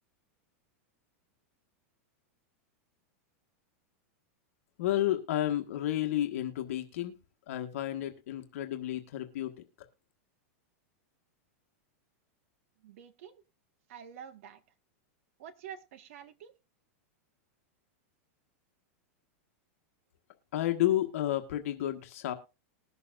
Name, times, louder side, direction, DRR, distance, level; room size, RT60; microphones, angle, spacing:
voice 1, 4.8-7.2 7.5-9.6 20.5-22.3, left 13 dB, 65° left, 1.4 m, -31 dB
voice 2, 12.8-13.4 13.9-14.6 15.4-16.5, right 8 dB, 65° right, 1.6 m, -48 dB
20.5 x 6.9 x 2.5 m
supercardioid pair, 145°, 8 cm